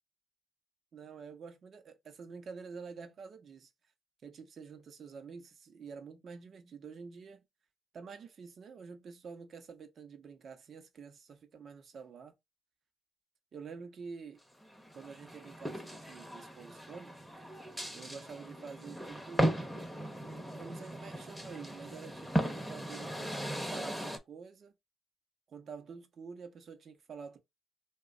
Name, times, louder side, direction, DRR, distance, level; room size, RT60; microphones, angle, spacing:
voice 1, 0.9-3.7 4.2-7.4 7.9-12.3 13.5-14.4 14.9-17.2 17.9-19.6 20.6-24.7 25.5-27.4, right 5 dB, 55° right, 0.8 m, -48 dB
sound 1, 14.6-24.2, right 1 dB, 5° right, 0.8 m, -37 dB
3.0 x 2.3 x 3.7 m
cardioid pair, 90°, 0 cm